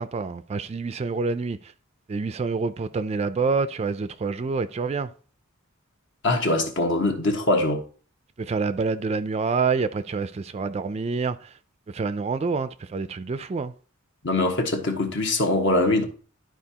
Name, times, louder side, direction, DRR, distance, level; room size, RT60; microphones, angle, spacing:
voice 1, 0.0-1.7 2.1-5.1 8.4-11.6 11.9-13.7, right 4 dB, 30° right, 0.3 m, -27 dB
voice 2, 6.2-7.8 14.2-16.0, left 2 dB, 60° left, 1.3 m, -22 dB
11.5 x 4.7 x 2.8 m
head